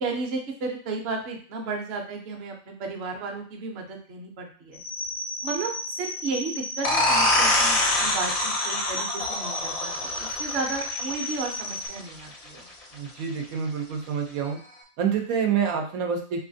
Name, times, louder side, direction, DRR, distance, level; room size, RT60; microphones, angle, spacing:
voice 1, 0.0-4.8 5.4-10.1 10.4-12.6, right 3 dB, 55° right, 2 dB, 0.8 m, -33 dB
sound 1, 4.7-11.9, left 1 dB, 80° left, 1.3 m, -34 dB
sound 2, 6.8-12.2, left 1 dB, 50° left, 0.4 m, -25 dB
voice 2, 12.9-14.6 15.0-16.5, right 7 dB, 90° right, 3 dB, 1.1 m, -27 dB
3.4 x 3.1 x 2.6 m, 0.43 s
omnidirectional pair, 1.4 m